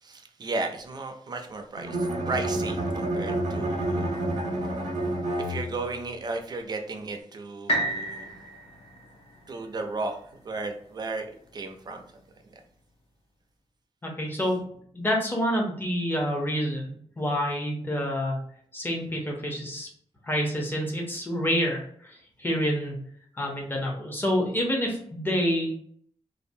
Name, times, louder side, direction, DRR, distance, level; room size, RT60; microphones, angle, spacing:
voice 1, 0.0-8.4 9.5-12.0 12.4-12.6, right 3 dB, 40° right, 5 dB, 0.3 m, -35 dB
Bowed string instrument, 1.8-6.1, right 1 dB, 90° right, 0.5 m, -29 dB
sound 1, 7.7-11.6 12.2-12.3, right 1 dB, 60° left, 0.5 m, -33 dB
voice 2, 14.0-14.6 14.9-18.4 18.7-19.9 20.2-21.8 22.4-23.0 23.4-25.8, equal, 20° left, -1 dB, 0.6 m, -27 dB
2.6 x 2.0 x 2.6 m, 0.62 s
wide cardioid pair, 175°, 11 cm